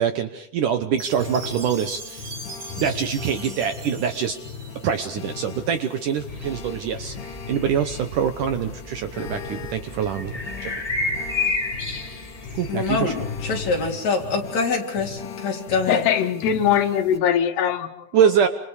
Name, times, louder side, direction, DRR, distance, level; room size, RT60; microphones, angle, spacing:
voice 1, 0.0-2.3 2.8-4.4 4.8-7.1 7.5-10.7 12.5-13.1 18.1-18.5, right 8 dB, 70° right, 8 dB, 2.1 m, -24 dB
Chime, 1.0-5.1, right 4 dB, 35° right, 2.1 m, -40 dB
sound 1, 1.2-17.2, left 6 dB, 60° left, 2.7 m, -38 dB
sound 2, 6.3-13.9, left 3 dB, 25° left, 0.7 m, -32 dB
voice 2, 12.7-16.0, left 4 dB, 45° left, 0 dB, 4.9 m, -25 dB
voice 3, 15.9-18.1, left 9 dB, 85° left, 7 dB, 3.6 m, -21 dB
29.5 x 27.0 x 4.9 m, 0.77 s
omnidirectional pair, 4.7 m